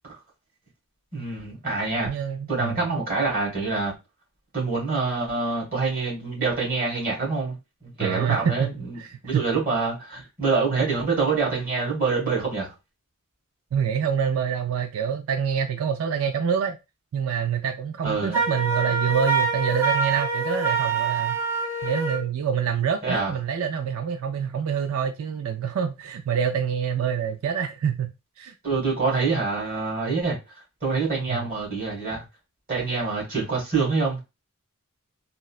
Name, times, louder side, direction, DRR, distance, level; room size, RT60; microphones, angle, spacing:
voice 1, 1.1-2.1 2.5-3.9 4.5-7.6 7.8-9.0 9.2-12.7 18.0-18.4 23.0-23.3 28.6-30.4 30.8-32.2 32.7-34.2, right 4 dB, 40° right, 1.9 m, -26 dB
voice 2, 2.0-2.8 8.0-9.4 13.7-16.8 17.1-21.4 21.8-28.5 31.3-31.5, right 7 dB, 75° right, 0.3 m, -26 dB
Wind instrument woodwind instrument, 18.3-22.3, right 4 dB, 10° right, 0.4 m, -25 dB
3.8 x 2.1 x 2.3 m
head